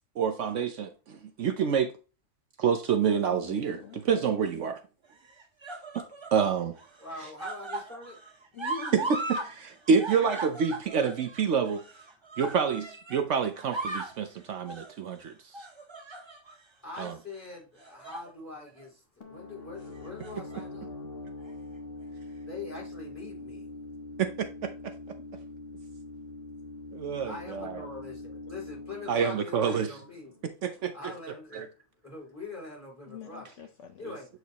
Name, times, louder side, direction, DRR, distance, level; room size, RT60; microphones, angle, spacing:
voice 1, 0.2-1.9 2.6-4.8 5.9-6.0 6.3-6.8 9.5-11.8 12.4-15.6 17.0-17.2 24.2-24.9 26.9-27.8 29.1-29.9 30.4-30.9 31.5-31.7, right 6 dB, 65° right, 1.0 m, -28 dB
voice 2, 3.3-4.0 8.5-9.2 33.1-34.2, left 6 dB, 65° left, 1.1 m, -44 dB
sound 1, 3.7-4.2 5.1-6.4 6.8-9.5 9.8-13.2 13.6-14.2 14.7-15.0 15.5-16.6 16.9-17.2 17.8-18.3 18.7-18.9 20.0-20.6 21.5-21.6, right 2 dB, 25° right, 0.7 m, -38 dB
voice 3, 7.0-8.2 16.8-20.9 22.5-23.7 27.2-30.3 30.9-31.6 32.0-33.5 34.0-34.3, left 3 dB, 10° left, 3.9 m, -43 dB
sound 2, 19.2-30.7, left 2 dB, 45° left, 1.3 m, -43 dB
8.0 x 4.7 x 2.9 m
omnidirectional pair, 1.4 m